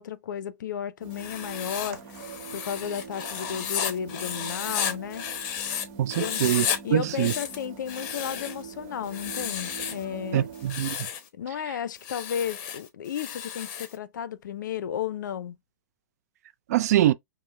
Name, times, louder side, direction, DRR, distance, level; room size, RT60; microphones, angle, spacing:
voice 1, 0.0-2.2 2.5-5.2 6.2-6.4 6.8-10.5 11.3-15.6, left 9 dB, 75° left, 0.4 m, -33 dB
sound 1, 1.0-10.7, right 6 dB, 40° right, 1.0 m, -43 dB
Writing, 1.1-5.8 6.1-6.8 7.1-8.6 9.1-10.0 10.5-11.3 12.0-13.9, left 8 dB, 45° left, 0.8 m, -33 dB
voice 2, 6.0-6.7 6.9-7.3 10.3-11.1 16.7-17.1, right 12 dB, 55° right, 0.4 m, -23 dB
5.3 x 2.0 x 2.2 m
hypercardioid pair, 140°, 10 cm